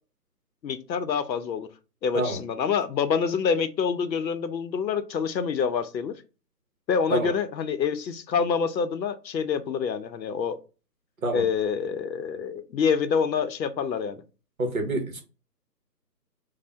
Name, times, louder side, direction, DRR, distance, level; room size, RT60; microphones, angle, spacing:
voice 1, 0.6-1.7 2.0-6.1 6.9-10.6 11.3-14.2, left 6 dB, 85° left, 11 dB, 0.7 m, -26 dB
voice 2, 14.6-15.2, right 2 dB, 55° right, 3 dB, 0.9 m, -27 dB
2.7 x 2.1 x 3.2 m, 0.33 s
hypercardioid pair, 175°, 50 cm